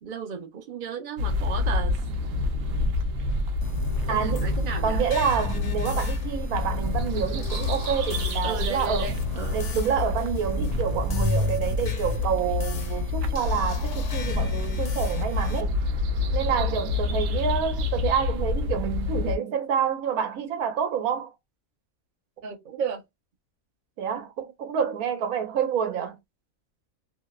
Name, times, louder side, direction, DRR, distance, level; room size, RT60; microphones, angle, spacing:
voice 1, 0.0-2.0 4.1-5.0 8.4-9.6 16.6-16.9 22.4-23.0, right 6 dB, 50° right, 0.6 m, -34 dB
Queensway - Walking through Kensington Park, 1.2-19.4, left 3 dB, 70° right, 0.9 m, -28 dB
sound 1, 3.6-15.6, left 2 dB, 65° left, 0.9 m, -34 dB
voice 2, 4.1-4.5 4.8-9.2 9.5-15.7 16.3-21.3 24.0-26.2, right 7 dB, 90° right, 1.2 m, -28 dB
2.7 x 2.1 x 2.2 m
omnidirectional pair, 1.5 m